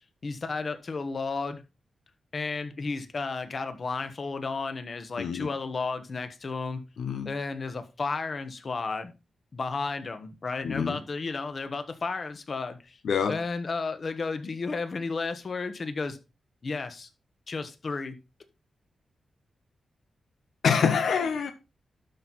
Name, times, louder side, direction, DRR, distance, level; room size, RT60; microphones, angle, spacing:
voice 1, 0.2-1.6 2.3-6.8 7.2-9.1 9.5-13.0 13.3-16.2 16.6-17.1 17.5-18.2, left 4 dB, 50° left, 1.3 m, -33 dB
voice 2, 5.2-5.5 7.0-7.3 10.6-11.0 13.0-13.4 20.6-21.5, left 6 dB, 85° left, 0.7 m, -26 dB
12.0 x 4.6 x 4.1 m
cardioid pair, 75°, 0 cm